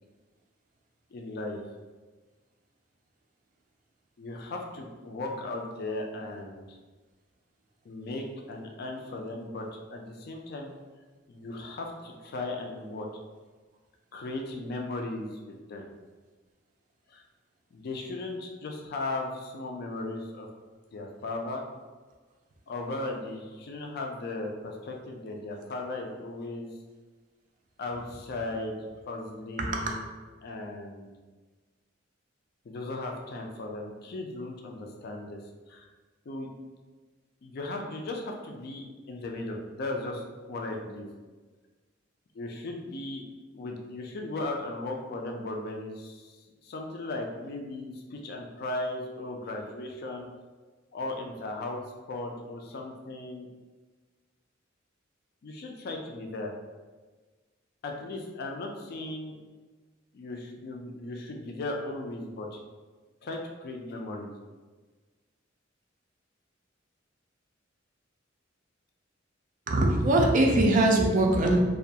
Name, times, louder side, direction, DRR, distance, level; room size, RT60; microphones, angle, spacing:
voice 1, 1.1-1.6 4.2-6.7 7.8-10.7 11.3-13.1 14.1-15.9 17.1-17.2 17.7-20.5 20.9-21.6 22.7-26.7 27.8-28.8 29.1-30.0 30.4-31.2 32.7-35.4 35.7-35.9 36.3-36.5 37.4-41.1 42.3-43.2 43.5-46.4 46.6-50.3 50.9-51.8 52.1-53.5 55.4-56.5 57.8-59.4 60.1-62.6 63.2-64.3, left 2 dB, 55° left, 2 dB, 0.3 m, -36 dB
voice 2, 29.6-29.9 69.7-71.6, right 1 dB, 40° right, 1 dB, 0.3 m, -22 dB
2.3 x 2.2 x 2.7 m, 1.3 s
head